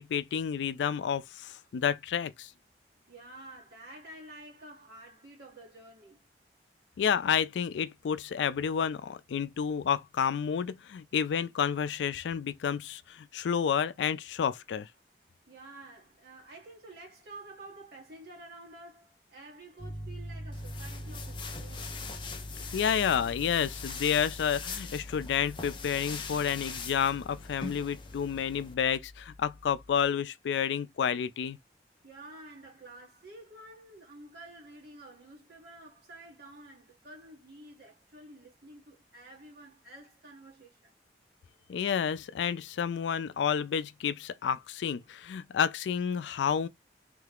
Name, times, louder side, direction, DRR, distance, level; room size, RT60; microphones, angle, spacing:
voice 1, 0.0-2.5 7.0-14.9 22.7-31.6 41.7-46.7, left 7 dB, 90° left, 0.3 m, -30 dB
voice 2, 3.1-6.3 15.5-22.0 32.0-40.9, right 2 dB, 60° right, 1.7 m, -50 dB
Piano, 19.8-30.0, left 1 dB, ahead, 1.1 m, -44 dB
sound 1, 20.5-28.7, left 5 dB, 30° left, 0.5 m, -42 dB
3.3 x 2.4 x 3.4 m
head